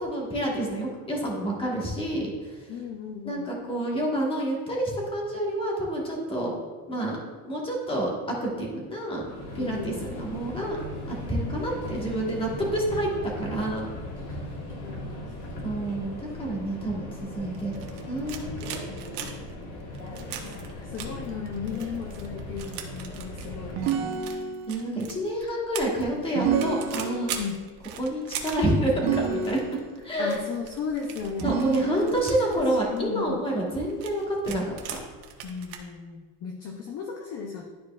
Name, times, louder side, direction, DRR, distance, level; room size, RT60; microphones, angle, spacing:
voice 1, 0.0-2.6 3.2-6.5 6.9-9.2 9.5-10.8 11.1-13.1 13.4-13.8 15.6-18.6 24.7-27.3 28.0-29.6 30.0-30.3 31.4-35.0, right 1 dB, 10° left, -3 dB, 1.4 m, -28 dB
voice 2, 2.7-3.5 9.6-10.2 14.8-15.3 20.8-24.3 27.4-27.6 30.2-33.4 35.4-37.6, left 6 dB, 35° left, 2 dB, 0.6 m, -36 dB
Subway metro underground, 9.2-24.0, left 1 dB, 70° left, 1.9 m, -38 dB
sound 1, 17.5-35.8, right 8 dB, 80° right, 1.2 m, -41 dB
sound 2, 23.8-24.9 26.4-27.5 29.0-30.0 31.4-32.4, right 7 dB, 60° right, 0.9 m, -29 dB
12.0 x 4.6 x 2.4 m, 1.4 s
cardioid pair, 155°, 45 cm